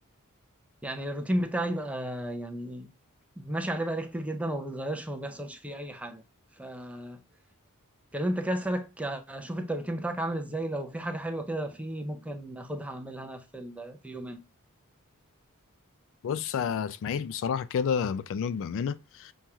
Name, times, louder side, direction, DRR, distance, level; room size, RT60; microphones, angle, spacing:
voice 1, 0.8-2.9 3.4-6.2 6.6-7.2 8.1-14.4, right 1 dB, 5° right, 0.5 m, -33 dB
voice 2, 16.2-19.3, left 7 dB, 60° left, 0.3 m, -30 dB
6.1 x 2.9 x 2.2 m
head